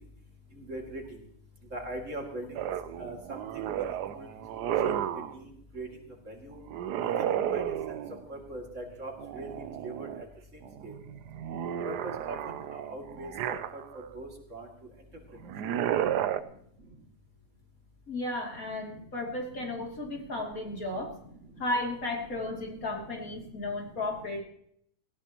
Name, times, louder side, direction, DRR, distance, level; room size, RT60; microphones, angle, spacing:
voice 1, 0.7-1.0 1.7-2.5 3.0-3.4 4.1-4.3 4.8-4.9 5.3-5.4 5.7-5.9 6.3-6.6 7.4-7.6 8.3-9.5 9.8-10.3 10.8-10.9 11.8-11.9 12.2-12.4 12.7-13.8 14.1-14.7, right 1 dB, 50° right, 1 dB, 2.8 m, -40 dB
sound 1, 2.5-5.4 6.7-8.3 9.2-10.2 10.6-14.1 15.4-16.4, right 10 dB, 85° right, 1.3 m, -32 dB
voice 2, 15.5-16.0 16.3-16.4 18.1-21.1 21.6-24.4, left 2 dB, 60° left, 0 dB, 3.3 m, -34 dB
18.5 x 16.5 x 3.0 m, 0.68 s
omnidirectional pair, 1.7 m